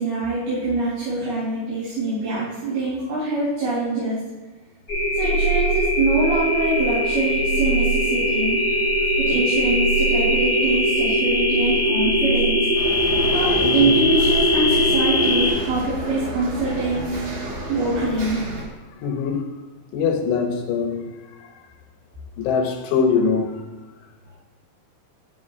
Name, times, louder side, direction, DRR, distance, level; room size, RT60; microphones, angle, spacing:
voice 1, 0.0-4.2 5.1-8.6 9.2-12.7 13.3-17.2 17.7-18.4, right 2 dB, 60° right, 5.0 m, -24 dB
sound 1, 4.9-15.5, equal, 60° left, 0.3 m, -20 dB
voice 2, 8.8-9.3 13.6-14.0 19.0-19.5 19.9-21.1 21.4-21.5 22.4-23.6, left 5 dB, 80° left, 3.0 m, -23 dB
sound 2, 12.7-18.6, right 1 dB, 90° right, 1.1 m, -31 dB
13.0 x 10.0 x 2.4 m
omnidirectional pair, 5.2 m